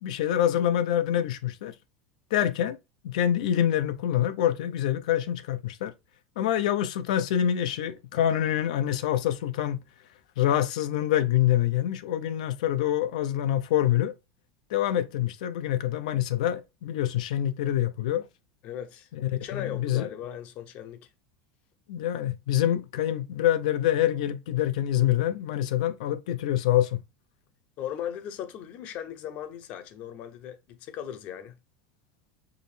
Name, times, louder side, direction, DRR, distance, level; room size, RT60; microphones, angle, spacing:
voice 1, 0.0-1.7 2.3-2.8 3.0-5.9 6.4-9.8 10.4-14.1 14.7-18.3 19.2-20.1 21.9-27.0, left 11 dB, 85° left, 0.6 m, -26 dB
voice 2, 18.6-21.1 27.8-31.6, left 10 dB, 35° left, 0.6 m, -38 dB
4.8 x 2.9 x 3.2 m
supercardioid pair, 175°, 4 cm